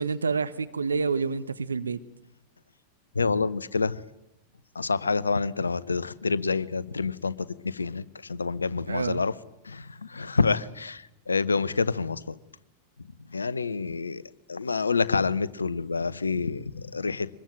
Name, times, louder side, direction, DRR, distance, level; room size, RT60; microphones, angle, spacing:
voice 1, 0.0-2.0 8.9-9.2, right 5 dB, 75° right, 0.9 m, -28 dB
voice 2, 3.1-4.0 4.7-9.3 9.6-12.4 13.3-14.2 14.5-17.3, left 4 dB, 75° left, 0.8 m, -27 dB
24.0 x 21.5 x 9.2 m
figure-of-eight pair, 90°, 0 cm